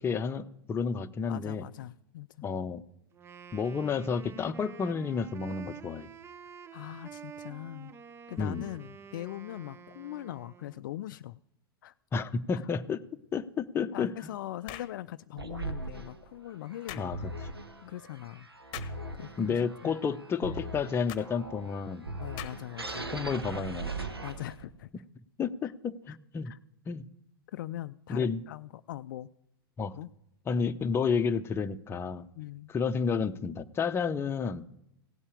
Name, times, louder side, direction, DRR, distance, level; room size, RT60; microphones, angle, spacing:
voice 1, 0.0-1.6 2.4-2.8 3.5-6.1 8.4-8.6 12.1-13.0 13.3-14.1 17.0-17.3 19.4-22.1 23.1-24.1 25.4-26.5 26.9-27.1 28.1-28.4 29.8-29.9 30.5-32.3 32.7-34.6, left 5 dB, 20° left, 9 dB, 0.7 m, -31 dB
voice 2, 1.3-2.5 6.7-7.9 8.3-11.4 11.8-11.9 12.5-12.6 13.9-17.1 17.8-18.5 19.1-19.9 22.2-23.1 24.2-24.9 25.6-25.7 26.1-26.2 26.4-26.6 27.5-29.3 29.9-30.1 32.3-32.7, left 14 dB, 55° left, 13 dB, 0.4 m, -41 dB
Wind instrument woodwind instrument, 3.1-10.8, right 7 dB, 20° right, 0.6 m, -49 dB
sound 1, 14.7-15.0 16.9-17.1 18.7-19.0 21.1-21.3 22.4-22.8, left 13 dB, 40° left, 0.9 m, -42 dB
sound 2, 15.4-24.8, right 2 dB, 90° right, 1.1 m, -40 dB
16.5 x 5.5 x 8.4 m, 0.82 s
figure-of-eight pair, 95°, 12 cm